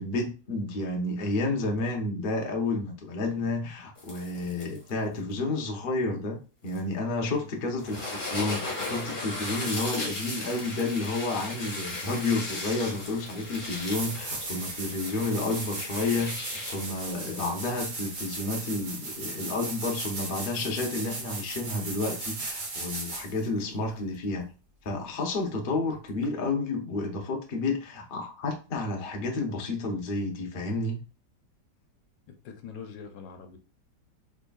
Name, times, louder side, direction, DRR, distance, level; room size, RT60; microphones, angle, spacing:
voice 1, 0.0-24.5 24.8-31.0, left 2 dB, 55° left, 1 dB, 0.5 m, -31 dB
sound 1, 4.0-4.9 6.7-6.8 7.8-17.9, left 2 dB, 30° left, 1.1 m, -37 dB
sound 2, 13.7-23.4 26.2-26.3, right 3 dB, 50° right, 1.3 m, -37 dB
voice 2, 23.8-24.1 32.3-33.6, left 6 dB, 80° left, 6 dB, 1.3 m, -44 dB
3.7 x 3.3 x 2.3 m, 0.34 s
omnidirectional pair, 2.0 m